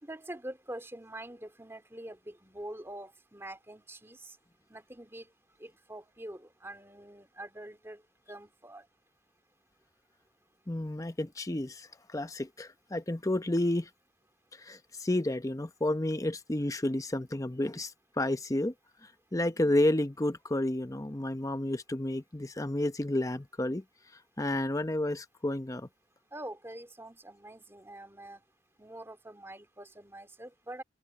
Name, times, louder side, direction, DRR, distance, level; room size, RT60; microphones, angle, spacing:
voice 1, 0.0-4.4 4.7-5.3 5.6-8.0 8.3-8.9 26.3-28.4 28.8-30.8, right 1 dB, 15° right, 3.1 m, -45 dB
voice 2, 10.7-13.9 14.5-18.7 19.3-23.8 24.4-25.9, left 1 dB, 20° left, 0.8 m, -31 dB
open air
head